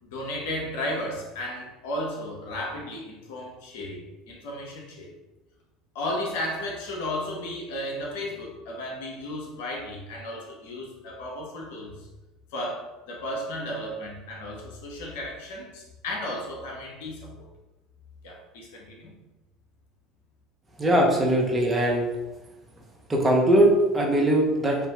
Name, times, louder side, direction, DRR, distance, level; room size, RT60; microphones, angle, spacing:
voice 1, 0.0-5.1 5.9-12.1 12.5-17.5 18.2-19.1, left 1 dB, 70° left, -1 dB, 1.0 m, -34 dB
voice 2, 20.8-22.0 23.1-24.8, right 1 dB, 20° right, -2 dB, 1.2 m, -20 dB
4.3 x 3.0 x 3.8 m, 1.1 s
hypercardioid pair, 70°, 0 cm